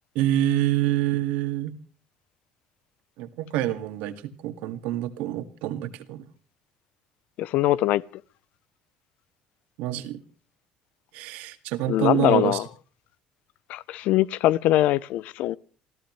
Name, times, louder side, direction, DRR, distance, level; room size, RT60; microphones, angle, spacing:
voice 1, 0.2-1.7 3.2-6.3 9.8-10.2 11.1-12.6, right 13 dB, 85° right, 1.9 m, -26 dB
voice 2, 7.4-8.0 11.9-12.7 13.7-15.6, left 15 dB, 70° left, 0.7 m, -22 dB
28.5 x 14.5 x 3.2 m
cardioid pair, 115°, 2 cm